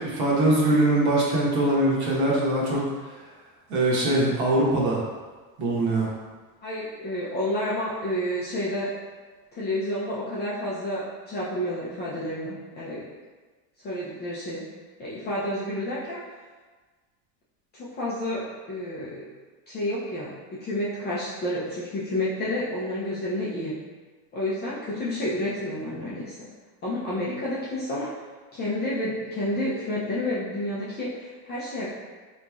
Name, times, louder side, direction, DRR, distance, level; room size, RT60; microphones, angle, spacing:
voice 1, 0.0-2.8 3.7-5.0 5.6-6.1, right 1 dB, 55° right, -4 dB, 1.2 m, -22 dB
voice 2, 6.6-8.9 9.5-13.0 13.8-14.6 15.0-16.2 17.7-19.3 19.7-23.7 24.3-26.5 26.8-28.1 28.5-31.9, left 1 dB, 20° left, -9 dB, 0.4 m, -30 dB
3.9 x 3.0 x 2.3 m, 1.4 s
supercardioid pair, 145°, 49 cm